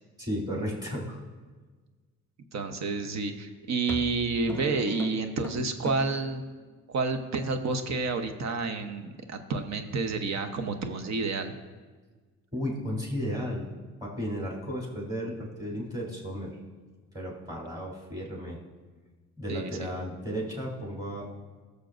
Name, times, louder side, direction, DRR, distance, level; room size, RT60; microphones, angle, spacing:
voice 1, 0.2-1.2 12.5-13.7 14.0-16.6 17.1-18.6 19.4-21.3, equal, 15° right, -3 dB, 3.4 m, -34 dB
voice 2, 2.5-6.4 6.9-11.5 19.5-19.9, right 4 dB, 60° right, 7 dB, 1.0 m, -30 dB
sound 1, 3.0-3.2 3.9-6.3, left 3 dB, 5° left, 0.9 m, -37 dB
18.0 x 6.7 x 2.6 m, 1.4 s
cardioid pair, 90°, 30 cm